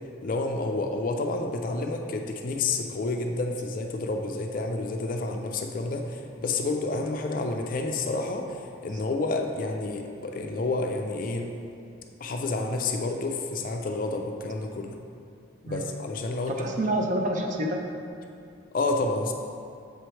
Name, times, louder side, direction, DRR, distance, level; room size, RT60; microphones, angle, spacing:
voice 1, 0.2-11.5 12.2-14.9 15.6-16.9 18.7-19.3, left 3 dB, 45° left, 3 dB, 0.4 m, -29 dB
voice 2, 16.5-17.8, right 1 dB, 40° right, 1 dB, 0.5 m, -28 dB
6.8 x 3.1 x 4.4 m, 2.4 s
head